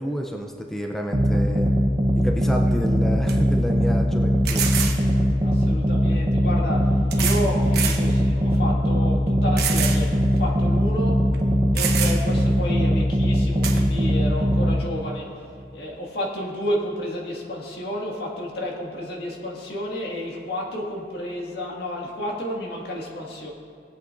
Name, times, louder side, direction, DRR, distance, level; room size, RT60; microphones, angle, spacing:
voice 1, 0.0-1.7 2.2-4.7, equal, ahead, 2 dB, 0.5 m, -29 dB
sound 1, 1.1-14.7, equal, 25° right, 0.8 m, -21 dB
sound 2, 2.7-2.8 3.3-3.4 4.4-5.0 6.1-6.2 7.1-7.5 7.7-8.0 8.5-8.6 9.6-10.0 10.4-10.5 11.3-11.4 11.7-12.4 13.6-13.8, right 8 dB, 60° right, 1.1 m, -26 dB
voice 2, 5.4-6.8 7.2-10.1 10.3-11.2 11.7-15.3 15.7-23.5, equal, 60° left, -2 dB, 1.9 m, -31 dB
19.0 x 8.3 x 2.6 m, 2.5 s
head